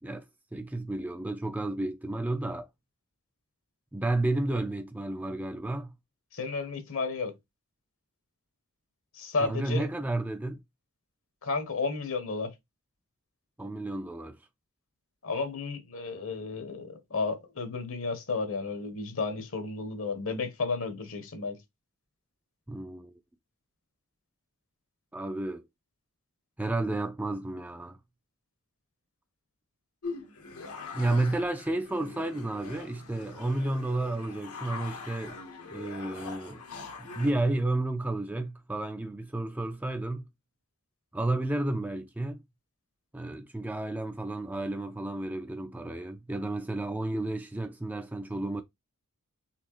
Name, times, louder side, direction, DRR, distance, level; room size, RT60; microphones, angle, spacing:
voice 1, 0.5-2.7 3.9-5.9 9.4-10.6 13.6-14.4 22.7-23.2 25.1-25.6 26.6-28.0 30.9-35.4 35.7-36.6 37.0-40.2 41.1-42.4 43.1-48.6, right 2 dB, 5° right, 0.4 m, -31 dB
voice 2, 6.3-7.3 9.1-9.9 11.4-12.5 15.2-21.6, left 4 dB, 65° left, 1.0 m, -32 dB
sound 1, 30.0-37.3, left 4 dB, 80° left, 1.1 m, -42 dB
4.3 x 3.2 x 3.0 m
head